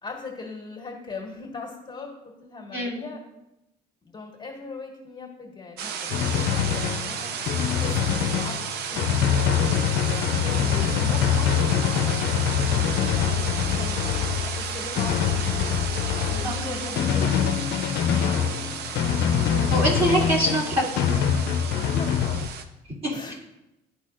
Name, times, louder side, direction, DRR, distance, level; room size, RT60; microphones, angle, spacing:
voice 1, 0.0-3.2 4.0-7.3 7.7-9.5 10.0-14.1 14.4-19.2 21.8-22.1 23.1-23.3, left 3 dB, 25° left, 0 dB, 1.5 m, -40 dB
voice 2, 2.7-3.0 16.4-16.9 19.7-20.9 23.0-23.3, right 1 dB, 35° right, -7 dB, 2.2 m, -25 dB
sound 1, 5.8-22.6, right 7 dB, 70° right, 0.6 m, -33 dB
Drum, 6.1-22.5, left 8 dB, 80° left, 0.5 m, -24 dB
12.5 x 4.1 x 2.5 m, 0.92 s
cardioid pair, 110°, 17 cm